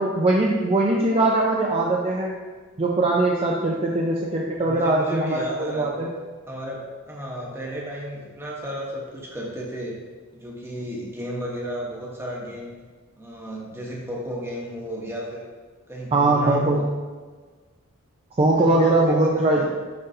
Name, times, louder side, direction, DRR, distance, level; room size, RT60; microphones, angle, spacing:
voice 1, 0.0-2.4 2.8-6.1 16.1-16.8 18.4-19.7, right 2 dB, 25° right, -2 dB, 0.5 m, -21 dB
voice 2, 4.6-6.1 6.5-10.0 10.3-12.8 13.2-15.4 15.9-16.9 18.5-19.7, equal, 10° right, -3 dB, 1.1 m, -33 dB
9.6 x 3.9 x 2.7 m, 1.4 s
head